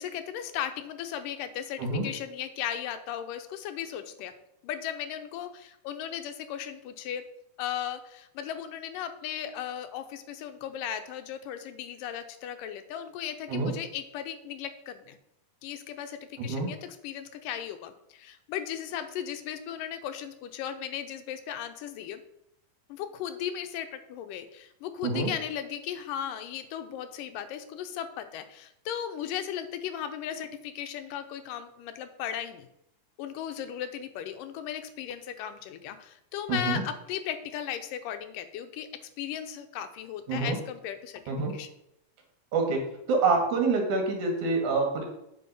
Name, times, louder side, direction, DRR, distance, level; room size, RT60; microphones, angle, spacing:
voice 1, 0.0-4.3 4.6-7.2 7.6-15.2 15.6-22.2 22.9-32.7 33.2-38.9 39.2-41.2 41.5-41.7, left 10 dB, 85° left, 9 dB, 2.5 m, -36 dB
voice 2, 16.4-16.7 25.0-25.3 36.5-36.8 40.3-40.6 41.3-41.5 42.5-42.8 43.1-45.0, right 3 dB, 70° right, 2 dB, 3.2 m, -26 dB
8.1 x 6.4 x 5.5 m, 0.79 s
omnidirectional pair, 3.7 m